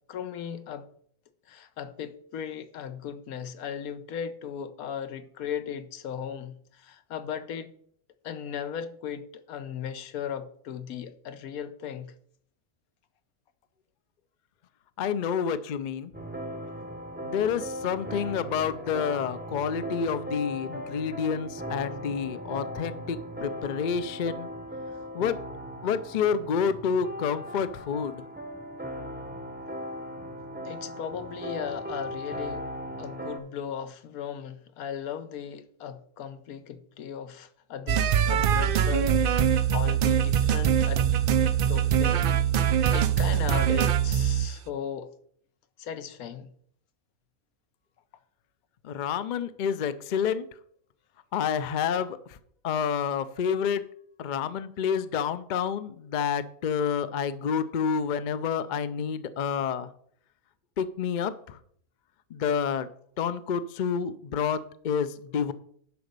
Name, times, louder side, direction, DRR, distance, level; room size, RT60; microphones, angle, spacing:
voice 1, 0.1-0.9 1.5-7.7 8.2-12.1 30.6-32.6 33.0-41.0 41.4-42.4 42.9-45.1 45.8-46.5, left 8 dB, 85° left, 1.2 m, -37 dB
voice 2, 15.0-16.1 17.2-24.5 25.1-25.4 25.8-28.2 48.8-50.5 51.3-52.2 52.6-53.8 54.2-59.9 60.8-61.6 62.3-62.9 63.2-65.5, left 7 dB, 60° left, 0.5 m, -29 dB
sound 1, 16.1-33.4, equal, 10° right, 0.6 m, -38 dB
sound 2, 37.9-44.5, right 9 dB, 80° right, 0.5 m, -23 dB
10.5 x 4.1 x 6.6 m
omnidirectional pair, 1.5 m